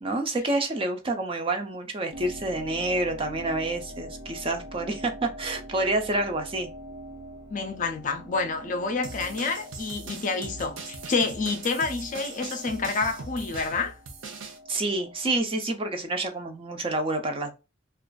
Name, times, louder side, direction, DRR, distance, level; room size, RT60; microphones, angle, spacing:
voice 1, 0.0-6.7 14.7-17.5, right 2 dB, 30° right, 0.4 m, -28 dB
sound 1, 2.1-15.4, equal, 70° right, 1.1 m, -44 dB
voice 2, 7.5-13.9, left 4 dB, 40° left, 0.4 m, -28 dB
sound 2, 9.0-14.6, right 4 dB, 85° right, 0.7 m, -40 dB
2.4 x 2.3 x 2.2 m
head